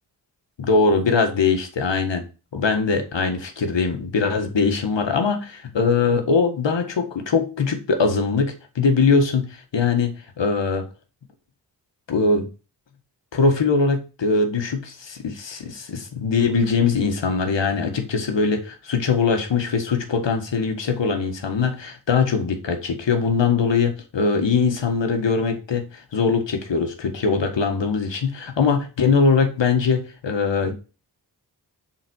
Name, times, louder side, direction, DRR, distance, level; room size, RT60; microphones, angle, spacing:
voice 1, 0.6-2.2 2.5-10.1 10.4-10.9 12.1-12.5 13.3-30.7, left 4 dB, 80° left, 1.6 m, -21 dB
7.4 x 4.1 x 6.3 m
cardioid pair, 60°, 43 cm